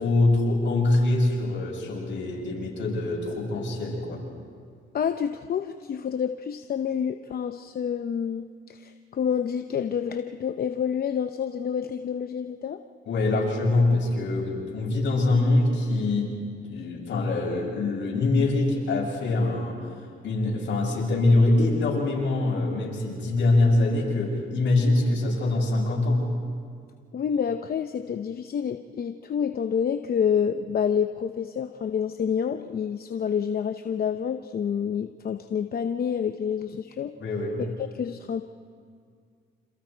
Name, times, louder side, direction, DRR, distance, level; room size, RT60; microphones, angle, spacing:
voice 1, 0.0-4.2 13.1-16.3 16.6-19.8 20.2-26.3 37.2-37.6, left 2 dB, 65° left, -2 dB, 7.5 m, -24 dB
voice 2, 4.9-12.8 27.1-37.1 37.6-38.4, left 7 dB, 50° left, 8 dB, 0.8 m, -28 dB
28.5 x 27.5 x 4.6 m, 2.1 s
cardioid pair, 90°, 20 cm